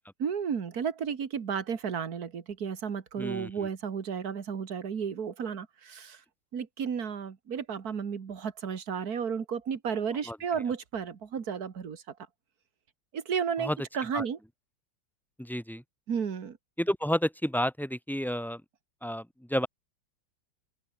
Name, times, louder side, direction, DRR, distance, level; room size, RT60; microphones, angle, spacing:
voice 1, 0.2-6.2 6.5-12.0 13.1-14.4 16.1-16.6, right 7 dB, 55° right, 2.2 m, -33 dB
voice 2, 3.2-3.7 10.3-10.4 13.6-13.8 14.1-14.3 15.4-15.8 16.8-18.6 19.0-19.7, equal, ahead, 2.6 m, -31 dB
open air
omnidirectional pair, 2.0 m